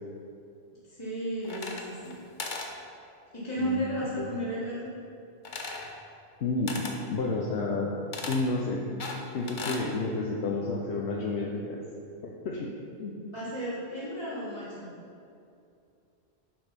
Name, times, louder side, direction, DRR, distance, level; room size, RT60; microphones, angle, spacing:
voice 1, 0.9-2.2 3.3-4.9 13.3-14.9, equal, 25° left, -11 dB, 1.7 m, -33 dB
sound 1, 1.4-2.1 2.4-2.7 5.4-5.9 6.7-7.0 8.1-8.4 9.0-9.9, left 3 dB, 50° left, 0.9 m, -37 dB
voice 2, 6.4-6.8 7.1-7.9 8.3-8.8 9.3-11.8 12.2-12.7 13.0-13.1, left 3 dB, 75° left, -2 dB, 1.0 m, -30 dB
7.3 x 5.3 x 5.8 m, 2.5 s
omnidirectional pair, 1.1 m